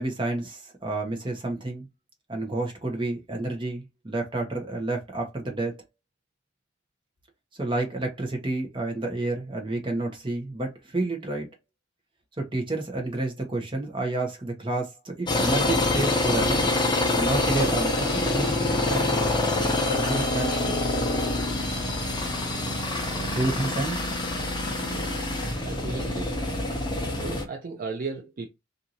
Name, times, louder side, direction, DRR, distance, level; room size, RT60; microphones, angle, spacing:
voice 1, 0.0-1.9 2.3-5.7 7.6-11.5 12.4-16.7 17.2-19.2 19.8-21.1 23.3-24.0, right 2 dB, 25° right, 0.9 m, -30 dB
sound 1, 15.3-27.4, left 2 dB, 20° left, 0.6 m, -26 dB
voice 2, 22.9-23.5 24.9-25.2 25.6-26.4 27.2-28.5, right 4 dB, 45° right, 0.4 m, -36 dB
2.6 x 2.5 x 2.8 m
head